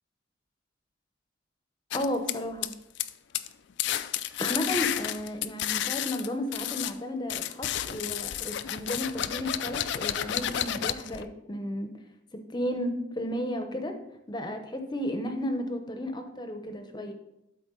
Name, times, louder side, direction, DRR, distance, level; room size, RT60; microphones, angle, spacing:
sound 1, 1.9-3.1 3.3-3.5 3.8-6.9 7.3-11.2, left 11 dB, 60° left, 0.4 m, -31 dB
voice 1, 1.9-2.7 4.4-11.9 12.3-13.9 14.3-17.1, left 1 dB, 20° left, 6 dB, 0.8 m, -33 dB
12.0 x 4.3 x 3.8 m, 0.87 s
head